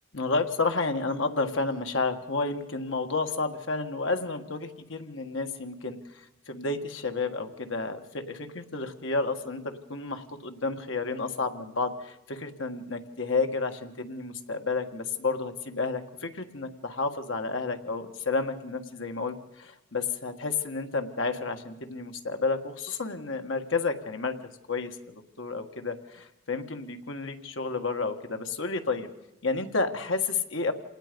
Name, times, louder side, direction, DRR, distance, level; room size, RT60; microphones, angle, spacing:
voice 1, 0.1-6.0 6.5-24.4 24.7-29.1 29.4-30.7, left 3 dB, 70° left, 6 dB, 1.7 m, -31 dB
27.0 x 19.0 x 5.3 m, 0.93 s
head